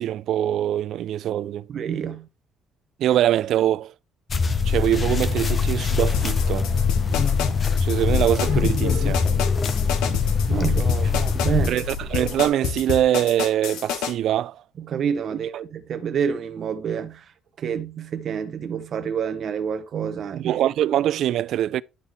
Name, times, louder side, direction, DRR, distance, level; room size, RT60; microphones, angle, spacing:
voice 1, 0.0-1.7 3.0-3.9 4.7-6.7 7.8-9.2 11.7-14.6 20.3-21.8, right 12 dB, 60° right, 0.3 m, -23 dB
voice 2, 1.7-2.3 10.1-10.2 10.5-11.8 14.8-17.2 17.6-20.5, right 7 dB, 45° right, 0.8 m, -28 dB
sound 1, 4.3-11.7, left 5 dB, 30° left, 0.7 m, -22 dB
car starting and shouts far away, 5.0-12.5, left 3 dB, 50° left, 1.3 m, -37 dB
sound 2, 6.1-14.1, left 8 dB, 85° left, 1.2 m, -28 dB
11.0 x 4.3 x 3.4 m
cardioid pair, 145°, 0 cm